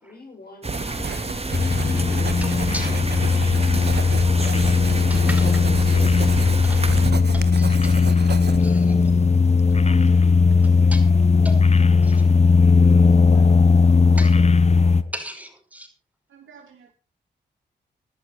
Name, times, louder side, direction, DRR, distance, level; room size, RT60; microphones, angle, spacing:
voice 1, 0.0-1.7 2.1-2.5 4.7-5.0 5.4-6.4 13.3-13.6 13.9-14.4 14.7-15.1, left 2 dB, 50° left, 2 dB, 6.4 m, -43 dB
sound 1, 0.6-7.1, right 2 dB, 30° right, 3.4 m, -29 dB
Writing, 0.7-8.9, right 6 dB, 55° right, 1.5 m, -32 dB
sound 2, 1.5-15.0, left 4 dB, 35° left, 1.1 m, -17 dB
voice 2, 2.4-3.0 4.4-4.5 5.1-5.5 6.6-6.9 7.3-7.9 8.5-9.1 10.9-11.1 11.4-11.6 12.0-12.2 14.2-14.3 15.1-15.9, equal, 5° right, 4 dB, 5.2 m, -36 dB
voice 3, 9.7-10.3 12.7-13.0 13.3-13.5 16.3-16.9, right 6 dB, 85° right, 4 dB, 3.2 m, -47 dB
17.5 x 11.0 x 4.3 m, 0.35 s
supercardioid pair, 45°, 20 cm